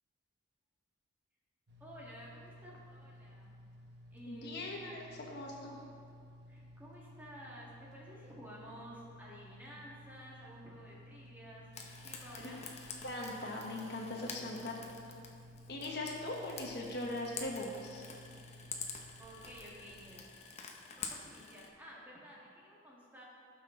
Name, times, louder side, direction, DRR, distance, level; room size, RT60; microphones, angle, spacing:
sound 1, 1.7-20.2, left 1 dB, 55° right, 0.9 m, -56 dB
voice 1, 1.8-3.5 4.1-4.5 4.8-5.2 6.5-11.6 12.0-12.6 19.2-20.3 21.0-23.3, equal, 10° right, -6 dB, 1.9 m, -52 dB
voice 2, 4.3-5.8 12.4-12.6 13.0-14.8 15.7-18.0, left 1 dB, 50° left, -1 dB, 1.2 m, -40 dB
Frying (food), 11.7-21.7, left 5 dB, 35° left, 0.8 m, -48 dB
17.5 x 5.9 x 3.8 m, 2.4 s
head